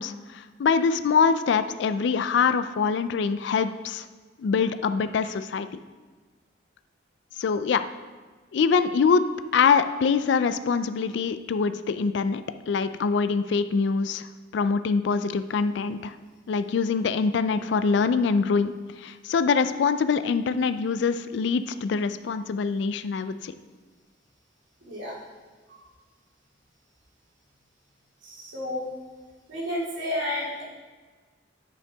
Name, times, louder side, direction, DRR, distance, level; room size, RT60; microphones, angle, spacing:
voice 1, 0.0-4.1 4.4-5.7 7.4-7.8 8.5-9.2 9.5-14.3 14.5-16.1 16.5-23.5, left 5 dB, 70° left, 12 dB, 0.3 m, -24 dB
voice 2, 24.8-25.2 28.2-28.9 29.5-30.6, left 1 dB, 85° right, -5 dB, 2.4 m, -31 dB
9.5 x 5.5 x 3.4 m, 1.4 s
head